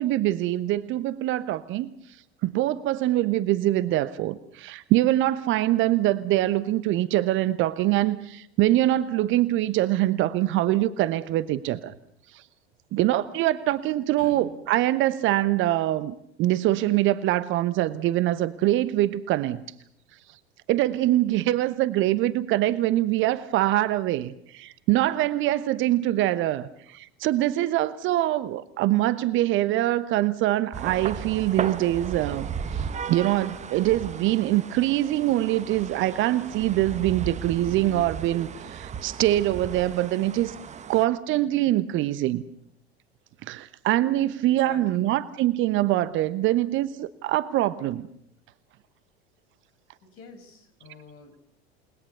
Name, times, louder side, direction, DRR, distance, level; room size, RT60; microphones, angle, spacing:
voice 1, 0.0-1.9 2.4-11.9 12.3-12.4 12.9-19.6 20.7-40.5 40.9-42.4 43.4-48.1, right 15 dB, 40° right, 15 dB, 1.1 m, -24 dB
voice 2, 14.2-14.5 44.4-45.2 50.0-51.4, left 3 dB, 40° left, 8 dB, 6.1 m, -46 dB
sound 1, 30.7-41.1, right 7 dB, 20° right, 1.4 m, -36 dB
29.5 x 20.5 x 6.9 m, 0.73 s
figure-of-eight pair, 80°, 32 cm